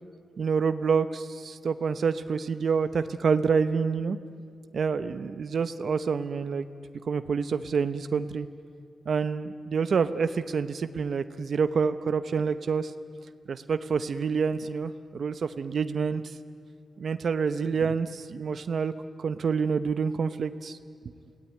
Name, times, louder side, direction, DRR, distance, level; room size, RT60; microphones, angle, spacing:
voice 1, 0.4-4.2 4.7-6.7 7.1-8.5 9.1-12.9 13.5-16.4 17.0-18.9 19.2-20.8, right 5 dB, 55° right, 11 dB, 0.8 m, -27 dB
29.0 x 17.5 x 9.5 m, 2.3 s
wide cardioid pair, 170°, 0 cm